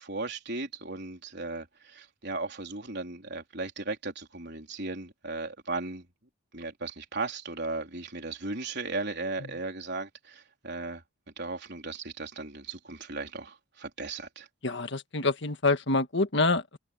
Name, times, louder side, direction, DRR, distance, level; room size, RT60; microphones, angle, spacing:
voice 1, 0.0-6.1 6.5-11.0 11.4-14.5, right 3 dB, 55° right, 4.3 m, -36 dB
voice 2, 14.6-16.8, left 3 dB, 60° left, 1.8 m, -27 dB
head